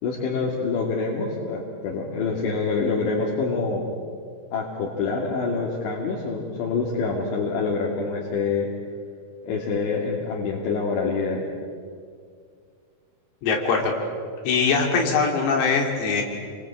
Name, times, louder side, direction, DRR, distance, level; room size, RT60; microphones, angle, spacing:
voice 1, 0.0-3.8 4.5-8.7 9.4-11.5, left 4 dB, 65° left, -3 dB, 4.7 m, -26 dB
voice 2, 13.4-14.0 14.5-16.2, left 5 dB, 90° left, 2 dB, 5.8 m, -22 dB
29.5 x 22.5 x 8.8 m, 2.2 s
omnidirectional pair, 5.9 m